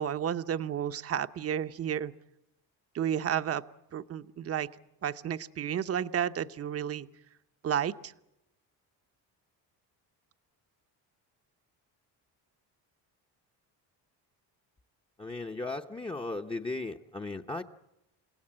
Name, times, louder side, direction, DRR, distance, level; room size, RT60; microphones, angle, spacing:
voice 1, 0.0-2.1 2.9-3.6 3.9-4.7 5.0-7.1 7.6-8.1, right 9 dB, 35° right, 11 dB, 0.9 m, -31 dB
voice 2, 15.2-17.6, left 2 dB, 15° left, 7 dB, 0.8 m, -36 dB
29.5 x 17.5 x 8.7 m, 0.91 s
cardioid pair, 145°, 40 cm